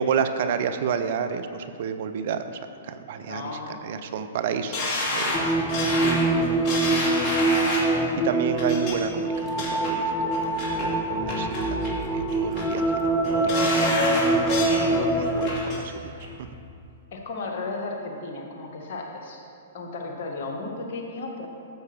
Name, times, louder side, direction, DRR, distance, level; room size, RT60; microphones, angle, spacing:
voice 1, 0.0-2.6 2.9-5.6 6.0-7.3 7.7-7.9 8.2-10.5 10.8-12.8 13.2-14.0 14.4-14.8 15.1-16.2, right 7 dB, 55° right, 9 dB, 0.6 m, -31 dB
voice 2, 3.2-3.8 7.8-8.1 14.7-15.2 15.8-16.1 17.1-19.4 19.7-21.5, left 3 dB, 55° left, 1 dB, 1.7 m, -35 dB
sound 1, 4.7-8.0 8.6-8.9 9.3-9.9 10.3-10.9 11.3-11.9 12.3-12.8 13.2-14.8 15.2-15.8 16.2-16.3, left 2 dB, 30° left, 2.7 m, -29 dB
sound 2, 5.3-15.5, right 2 dB, 15° left, 0.8 m, -24 dB
Car / Engine, 8.7-17.0, left 1 dB, 25° right, 1.9 m, -43 dB
13.0 x 7.8 x 3.6 m, 2.5 s
hypercardioid pair, 115°, 0 cm